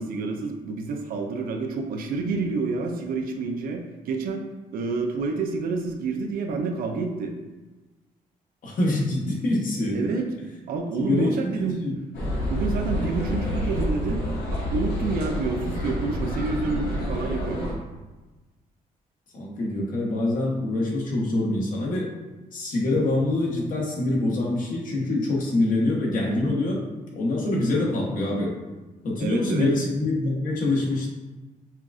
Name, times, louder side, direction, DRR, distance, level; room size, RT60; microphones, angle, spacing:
voice 1, 0.0-4.5 4.7-7.3 9.9-10.3 10.7-11.8 12.5-14.2 14.5-17.8 29.2-29.8, right 4 dB, 80° right, 4 dB, 0.5 m, -28 dB
voice 2, 8.6-10.0 11.0-11.9 19.3-22.1 22.5-26.8 27.1-28.5 29.0-31.1, left 2 dB, 65° left, -3 dB, 1.1 m, -25 dB
sound 1, 12.1-17.7, left 1 dB, 80° left, 1.3 m, -28 dB
5.7 x 2.4 x 2.4 m, 1.2 s
cardioid pair, 95°, 15 cm